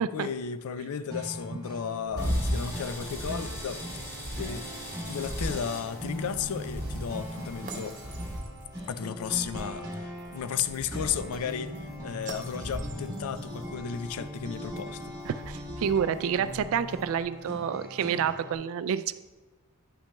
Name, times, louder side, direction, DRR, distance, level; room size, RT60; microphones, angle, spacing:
voice 1, 0.1-4.0 4.4-4.7 5.1-8.0 8.9-15.1, left 7 dB, 75° left, 12 dB, 0.4 m, -34 dB
sound 1, 1.1-18.5, equal, 15° right, 1.2 m, -40 dB
sound 2, 2.1-17.2, equal, 35° right, 0.7 m, -38 dB
sound 3, 2.2-8.4, equal, 10° left, 2.3 m, -44 dB
voice 2, 15.3-19.1, right 8 dB, 65° right, 15 dB, 0.3 m, -29 dB
9.8 x 5.8 x 2.2 m, 1.2 s
head